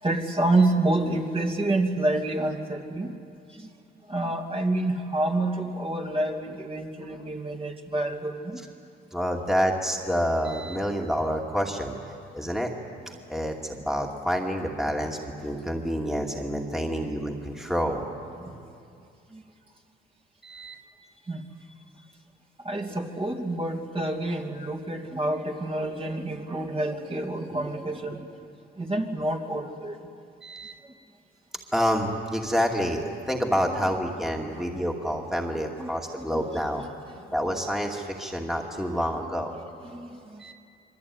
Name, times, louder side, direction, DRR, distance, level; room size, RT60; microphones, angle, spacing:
voice 1, 0.0-3.2 3.5-3.7 4.1-8.6 18.4-18.6 19.3-19.4 21.3-21.4 22.6-28.4 28.8-30.0 34.5-34.6 35.8-35.9 36.2-36.4 39.8-40.4, right 2 dB, 30° right, 1 dB, 2.7 m, -28 dB
voice 2, 9.1-12.0 12.3-12.7 13.3-18.0 20.4-20.8 30.4-30.8 31.7-36.8 37.3-39.5 40.4-40.5, equal, ahead, 1 dB, 2.4 m, -28 dB
25.5 x 23.0 x 9.6 m, 2.5 s
cardioid pair, 90°, 20 cm